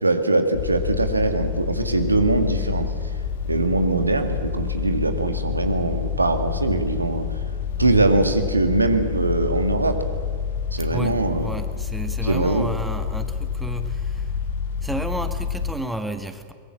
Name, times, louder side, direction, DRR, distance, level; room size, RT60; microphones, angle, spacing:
voice 1, 0.0-2.9 3.5-7.3 7.8-10.0 10.7-11.5 12.2-12.7, right 2 dB, 80° right, 8 dB, 2.1 m, -22 dB
sound 1, 0.5-15.7, left 6 dB, 60° left, 1.8 m, -28 dB
voice 2, 10.9-14.3 14.8-16.5, right 1 dB, 5° right, 8 dB, 1.8 m, -32 dB
24.0 x 22.0 x 7.4 m, 2.1 s
figure-of-eight pair, 90°, 0 cm